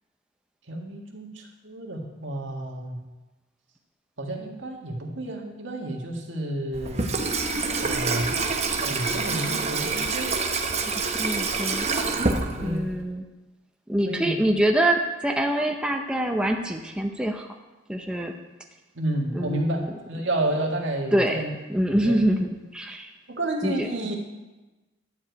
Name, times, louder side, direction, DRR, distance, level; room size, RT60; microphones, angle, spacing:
voice 1, 0.7-3.0 4.2-7.1 7.8-8.3 8.8-10.4 12.5-12.8 14.1-14.3 19.0-19.8 20.1-21.5 22.0-22.2 23.3-24.2, right 1 dB, 70° right, 0 dB, 1.8 m, -30 dB
Water tap faucet / Sink (filling or washing), 6.7-13.0, right 3 dB, 35° right, 0.9 m, -27 dB
voice 2, 11.0-11.9 12.6-13.3 13.9-17.5 17.9-18.3 19.3-19.9 21.1-21.4 21.7-23.1 23.6-23.9, right 1 dB, 5° right, 2 dB, 0.6 m, -25 dB
11.5 x 4.8 x 8.2 m, 1.1 s
head